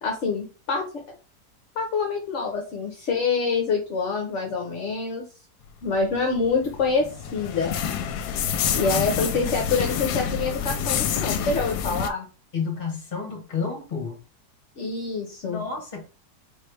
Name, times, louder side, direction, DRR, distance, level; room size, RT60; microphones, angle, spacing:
voice 1, 0.0-0.9 1.8-5.2 5.8-7.8 8.7-12.3 14.8-15.6, left 4 dB, 55° left, 1.0 m, -26 dB
sound 1, 6.2-12.1, left 8 dB, 80° left, 1.1 m, -27 dB
voice 2, 12.5-14.2 15.4-16.0, left 5 dB, 35° left, 1.3 m, -31 dB
4.5 x 3.2 x 3.2 m
omnidirectional pair, 1.8 m